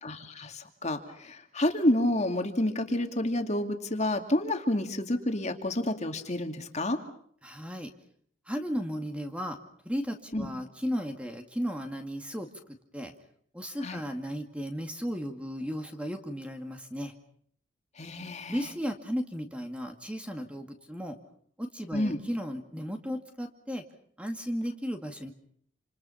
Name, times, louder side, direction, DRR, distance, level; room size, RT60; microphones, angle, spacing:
voice 1, 0.0-7.0 10.3-10.5 13.8-14.0 18.0-18.6 21.9-22.2, left 1 dB, 35° left, 6 dB, 2.5 m, -29 dB
voice 2, 7.4-7.9 8.5-9.6 9.8-12.5 12.9-13.1 13.5-17.1 18.5-21.2 21.6-23.8 24.2-25.3, equal, 5° right, 5 dB, 2.2 m, -35 dB
28.5 x 27.5 x 5.8 m, 0.62 s
head